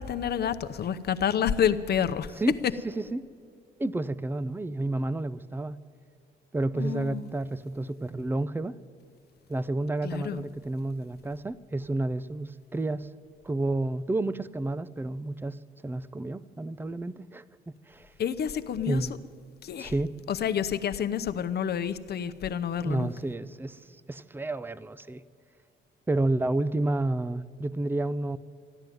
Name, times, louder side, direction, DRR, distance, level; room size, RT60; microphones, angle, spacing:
voice 1, 0.0-2.3 6.8-7.3 10.0-10.4 18.2-19.0 19.6-19.9 20.3-23.1, left 8 dB, 55° left, 10 dB, 0.8 m, -29 dB
voice 2, 2.8-3.3 3.8-5.8 6.5-8.7 9.5-13.1 13.4-17.4 17.9-18.1 18.8-19.1 19.8-20.1 22.8-23.8 24.1-25.2 26.1-28.4, right 2 dB, 10° right, 17 dB, 0.5 m, -30 dB
14.0 x 10.5 x 9.3 m, 2.2 s
cardioid pair, 90°, 20 cm